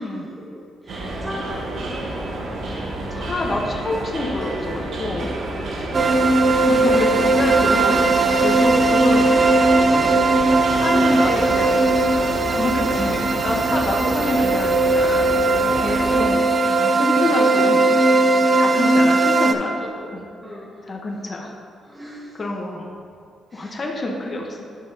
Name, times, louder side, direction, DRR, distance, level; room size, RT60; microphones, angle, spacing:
voice 1, 0.0-2.0 5.5-5.8 10.4-12.2 13.8-14.2 18.1-18.6 20.4-20.8 21.8-22.4 23.5-23.8 24.2-24.3, equal, 10° right, -8 dB, 1.4 m, -37 dB
sound 1, 0.9-16.3, right 1 dB, 70° right, 1.1 m, -30 dB
voice 2, 2.7-5.3 6.6-9.3 9.9-10.0 10.7-11.8 12.6-15.3 15.8-17.8 18.5-20.3 20.8-21.6 22.4-22.9 23.5-24.6, left 2 dB, 35° left, -1 dB, 0.9 m, -27 dB
sound 2, 5.9-19.5, right 2 dB, 35° right, 0.5 m, -18 dB
10.0 x 5.7 x 2.8 m, 2.4 s
cardioid pair, 90°, 0 cm